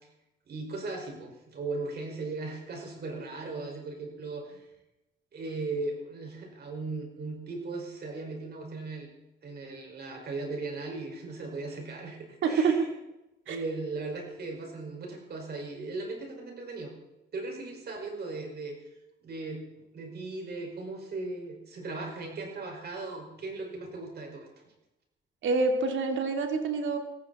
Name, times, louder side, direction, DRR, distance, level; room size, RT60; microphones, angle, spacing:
voice 1, 0.5-4.7 5.3-9.1 9.4-12.9 13.5-16.9 17.3-18.8 19.2-19.6 19.9-24.5, right 3 dB, 55° right, 2 dB, 5.8 m, -37 dB
voice 2, 12.4-12.9 13.5-13.6 25.4-27.0, right 4 dB, 70° right, 4 dB, 2.7 m, -26 dB
18.5 x 15.0 x 4.4 m, 0.93 s
cardioid pair, 90°, 20 cm